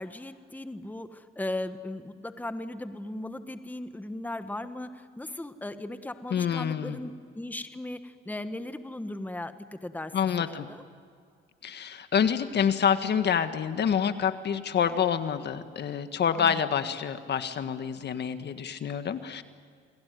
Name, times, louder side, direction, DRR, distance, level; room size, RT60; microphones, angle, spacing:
voice 1, 0.0-10.8 16.3-16.6, left 1 dB, 10° left, 10 dB, 1.4 m, -37 dB
voice 2, 6.3-7.0 10.1-10.7 11.6-19.4, left 8 dB, 60° left, 9 dB, 1.7 m, -27 dB
29.0 x 22.0 x 9.5 m, 2.2 s
cardioid pair, 90°, 20 cm